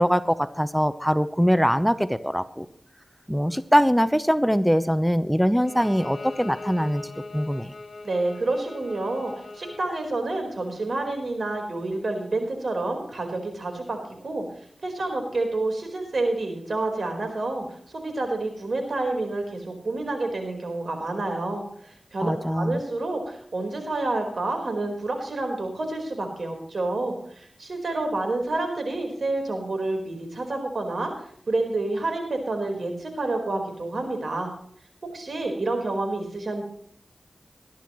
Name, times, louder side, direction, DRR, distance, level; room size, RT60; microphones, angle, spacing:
voice 1, 0.0-2.7 3.3-7.0 7.3-7.7 22.2-22.8, equal, ahead, 13 dB, 0.8 m, -22 dB
Bowed string instrument, 5.6-9.9, left 3 dB, 75° left, 1.7 m, -40 dB
voice 2, 8.0-14.4 14.8-31.1 31.5-34.5 35.1-36.6, right 2 dB, 75° right, 4 dB, 4.4 m, -29 dB
20.0 x 12.0 x 3.1 m, 0.64 s
cardioid pair, 45°, 0 cm